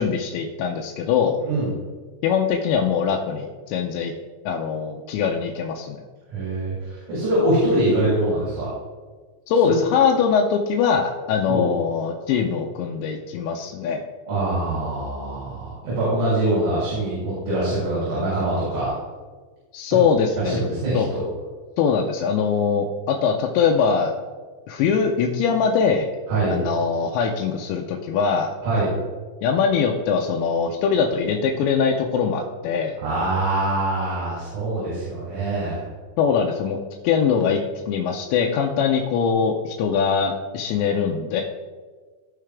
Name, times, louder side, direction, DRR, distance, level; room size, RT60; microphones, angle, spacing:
voice 1, 0.0-1.4 2.2-4.1 4.5-6.0 9.5-14.0 19.7-20.6 20.9-21.1 21.8-24.1 24.7-26.1 26.5-28.5 29.4-33.0 36.2-36.8 37.0-37.6 37.9-41.4, left 6 dB, 85° left, 1 dB, 2.9 m, -22 dB
voice 2, 1.4-1.7 6.3-6.8 7.1-8.7 9.6-9.8 11.5-11.7 14.3-18.9 20.4-21.2 26.3-26.6 28.6-28.9 33.0-35.8, right 1 dB, 55° right, -8 dB, 5.0 m, -23 dB
16.5 x 5.7 x 3.5 m, 1.4 s
omnidirectional pair, 5.2 m